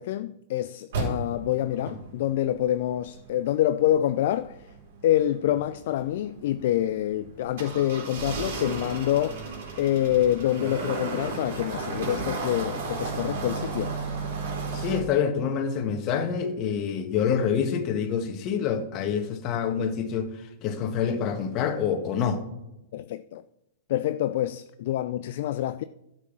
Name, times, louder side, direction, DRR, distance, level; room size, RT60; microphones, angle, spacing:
voice 1, 0.0-4.6 5.0-9.5 9.8-14.0 22.9-23.4 23.9-25.8, left 12 dB, 55° left, 0.4 m, -26 dB
sound 1, 0.9-15.0, right 4 dB, 60° right, 3.9 m, -34 dB
voice 2, 14.7-20.3 20.6-22.5, left 7 dB, 35° left, 1.6 m, -27 dB
11.5 x 6.1 x 6.2 m
figure-of-eight pair, 105°, 0 cm